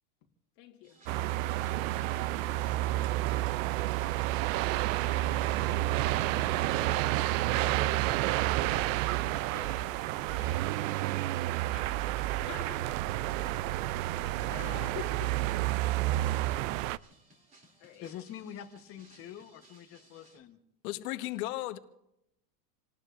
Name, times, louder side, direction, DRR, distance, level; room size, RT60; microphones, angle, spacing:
voice 1, 0.5-2.5 5.0-5.8 6.1-6.7 7.2-10.8 11.7-13.1 13.8-15.4 15.9-16.3 17.8-18.1 21.0-21.3, left 10 dB, 45° left, 1.7 m, -50 dB
sound 1, 0.8-20.4, right 1 dB, 20° right, 2.9 m, -62 dB
sound 2, 1.1-17.0, right 16 dB, 60° right, 0.5 m, -30 dB
voice 2, 18.0-20.6, left 10 dB, 30° left, 1.1 m, -45 dB
voice 3, 20.8-21.8, left 16 dB, 70° left, 1.3 m, -35 dB
28.0 x 19.0 x 2.5 m
supercardioid pair, 165°, 44 cm